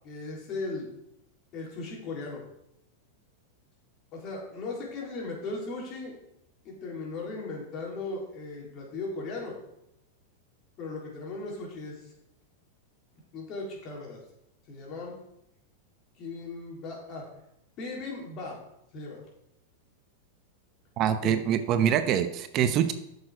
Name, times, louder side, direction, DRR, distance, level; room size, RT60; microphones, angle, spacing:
voice 1, 0.0-0.9 1.5-2.4 4.1-6.2 6.6-9.6 10.8-12.1 13.3-14.2 14.7-15.1 16.2-17.3 17.8-18.6 18.9-19.2 21.2-21.3, left 3 dB, 40° left, -2 dB, 3.9 m, -37 dB
voice 2, 21.0-22.9, right 9 dB, 40° right, 9 dB, 0.8 m, -24 dB
8.7 x 6.8 x 5.1 m, 0.80 s
hypercardioid pair, 115°, 0 cm